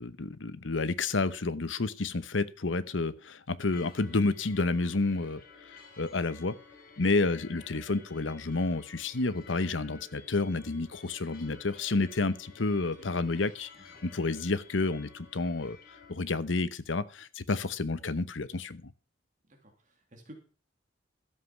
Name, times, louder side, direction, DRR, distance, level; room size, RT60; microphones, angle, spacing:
voice 1, 0.0-5.4 5.7-6.6 7.0-13.7 14.0-15.8 16.1-18.9, left 3 dB, 85° left, 15 dB, 1.0 m, -30 dB
sound 1, 3.7-16.1, left 5 dB, 50° left, 4.7 m, -53 dB
voice 2, 19.5-20.4, equal, 45° right, 2 dB, 2.9 m, -53 dB
13.5 x 7.6 x 5.9 m, 0.39 s
head